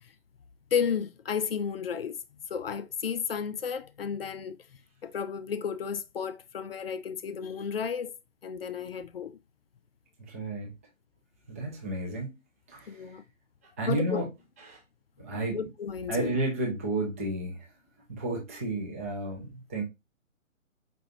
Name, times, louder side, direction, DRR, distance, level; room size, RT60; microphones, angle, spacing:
voice 1, 0.7-2.2 2.5-4.6 5.0-8.1 8.4-9.4 12.9-13.2 13.9-14.2 15.5-16.4, left 7 dB, 45° left, 0.5 m, -32 dB
voice 2, 10.3-10.7 11.5-12.3 12.7-12.9 13.8-14.3 14.7-14.8 15.2-15.6 16.1-17.6 18.1-19.8, right 2 dB, 10° right, 0.5 m, -31 dB
5.1 x 3.1 x 2.6 m
figure-of-eight pair, 140°, 40 cm